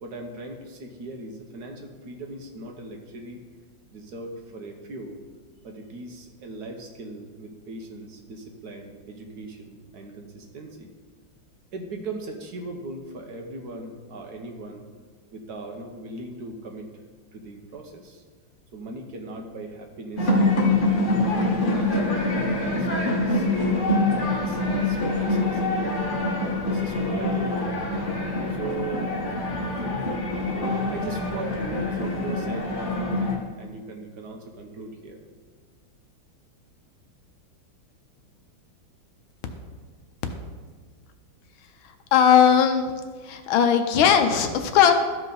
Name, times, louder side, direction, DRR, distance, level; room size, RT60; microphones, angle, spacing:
voice 1, 0.0-3.4 3.9-5.2 5.6-10.9 11.7-14.8 15.3-16.9 17.3-18.2 18.7-20.7 21.2-23.5 23.9-25.9 26.6-27.9 28.5-29.1 30.5-35.2, right 2 dB, 60° right, 3 dB, 1.3 m, -39 dB
sound 1, 20.2-33.4, left 2 dB, 35° left, 1.0 m, -25 dB
voice 2, 42.1-42.9 43.2-44.9, left 8 dB, 85° left, 7 dB, 1.5 m, -18 dB
13.5 x 4.8 x 3.9 m, 1.5 s
omnidirectional pair, 2.2 m